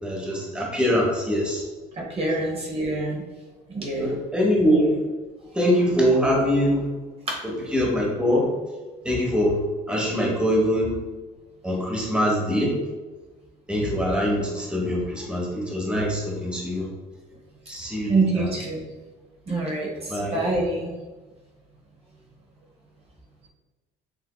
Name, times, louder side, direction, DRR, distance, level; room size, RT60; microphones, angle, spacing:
voice 1, 0.0-1.6 4.0-5.0 5.5-6.8 7.7-8.5 9.0-9.6 9.9-10.9 11.6-12.7 13.7-16.9 17.7-18.5 20.1-20.4, equal, 5° right, -2 dB, 1.1 m, -23 dB
voice 2, 2.0-3.2 3.7-4.2 7.3-7.4 18.1-18.8 19.5-20.9, right 2 dB, 35° right, -2 dB, 1.0 m, -26 dB
6.9 x 2.7 x 2.2 m, 1.3 s
cardioid pair, 110°, 17 cm